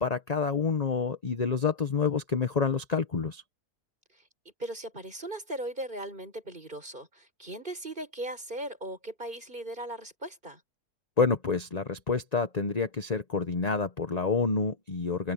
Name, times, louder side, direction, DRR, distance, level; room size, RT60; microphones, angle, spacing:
voice 1, 0.0-3.4 11.2-15.3, left 5 dB, 30° left, 0.9 m, -28 dB
voice 2, 4.6-10.6, right 1 dB, 30° right, 6.1 m, -38 dB
omnidirectional pair, 1.7 m